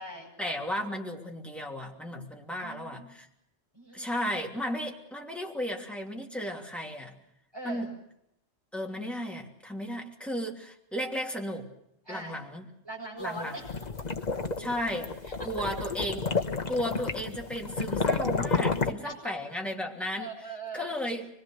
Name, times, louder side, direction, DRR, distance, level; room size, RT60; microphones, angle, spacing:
voice 1, 0.4-3.3 3.9-7.1 7.6-7.9 8.7-11.7 12.1-12.6 13.2-13.7 14.6-15.1 15.4-16.2 16.7-20.3 20.7-21.3, equal, ahead, -1 dB, 2.9 m, -34 dB
voice 2, 2.6-3.1 3.7-4.2 7.5-7.9 12.0-12.4 12.8-13.7 15.2-15.4 19.0-19.3 20.2-20.9, right 2 dB, 20° right, -1 dB, 7.7 m, -40 dB
sound 1, 13.4-18.9, left 4 dB, 35° left, 1.2 m, -30 dB
25.0 x 22.0 x 6.6 m, 0.78 s
omnidirectional pair, 1.3 m